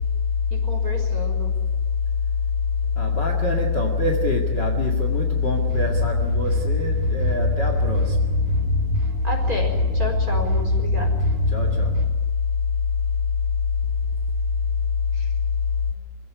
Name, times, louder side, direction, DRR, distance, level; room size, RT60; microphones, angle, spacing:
voice 1, 0.5-1.5 9.2-11.1 15.1-15.3, equal, 25° right, 2 dB, 4.7 m, -31 dB
voice 2, 3.0-8.2 11.5-11.9, left 4 dB, 35° left, 3 dB, 2.4 m, -22 dB
sound 1, 5.7-12.1, right 3 dB, 65° right, 3.8 m, -27 dB
25.5 x 16.5 x 9.6 m, 1.3 s
omnidirectional pair, 3.9 m